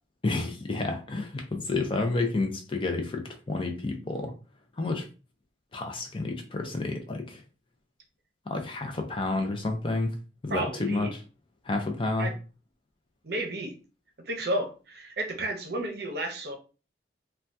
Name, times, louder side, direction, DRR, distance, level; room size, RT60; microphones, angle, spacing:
voice 1, 0.2-4.3 4.8-5.1 5.7-7.4 8.5-10.1 10.4-11.2 11.7-12.3, left 2 dB, 30° left, 0.5 m, -30 dB
voice 2, 10.5-11.1 12.2-12.3 13.2-13.7 14.3-16.6, right 1 dB, 60° right, 0.7 m, -32 dB
2.7 x 2.2 x 3.4 m
head